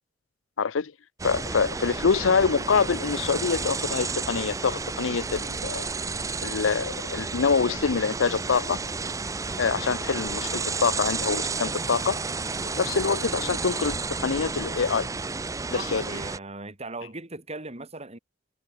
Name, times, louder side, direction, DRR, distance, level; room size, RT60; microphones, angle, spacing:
voice 1, 0.6-0.9 1.2-5.9 6.4-8.8 9.6-12.2 12.8-15.1 15.7-16.0, left 5 dB, 80° left, 0.6 m, -25 dB
sound 1, 1.2-16.4, right 4 dB, 15° right, 0.5 m, -31 dB
voice 2, 15.7-18.2, right 2 dB, 35° right, 3.6 m, -38 dB
head